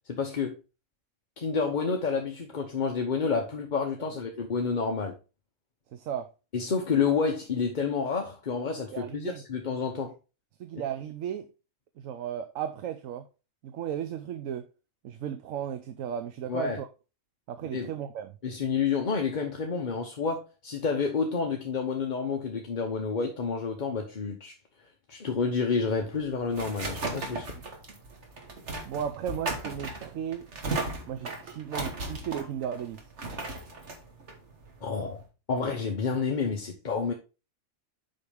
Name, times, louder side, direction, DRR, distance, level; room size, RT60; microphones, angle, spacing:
voice 1, 0.1-0.6 1.4-5.2 6.5-10.1 16.5-16.8 17.7-17.9 18.4-24.5 25.1-27.5 34.8-35.2 35.5-37.1, left 5 dB, 40° left, 0.9 m, -29 dB
voice 2, 5.9-6.3 8.9-9.4 10.6-11.5 12.0-13.3 13.6-14.7 15.0-16.9 17.5-18.4 28.8-30.5 31.1-33.0, right 9 dB, 70° right, 1.0 m, -35 dB
sound 1, 25.9-35.2, right 2 dB, 55° right, 1.7 m, -36 dB
7.7 x 5.7 x 3.5 m
omnidirectional pair, 1.5 m